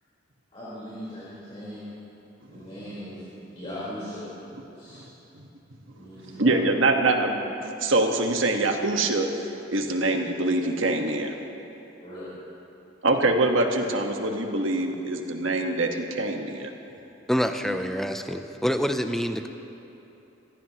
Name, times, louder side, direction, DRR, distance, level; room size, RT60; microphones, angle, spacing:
voice 1, 0.5-1.9 2.5-3.2 3.5-4.3 4.6-5.0 5.9-6.6 12.0-12.3, equal, 30° left, -12 dB, 4.4 m, -39 dB
voice 2, 6.4-9.3 9.7-11.3 13.0-16.7, right 2 dB, 80° right, 3 dB, 1.5 m, -24 dB
voice 3, 17.3-19.5, equal, ahead, 7 dB, 0.5 m, -26 dB
26.0 x 16.5 x 3.0 m, 2.9 s
head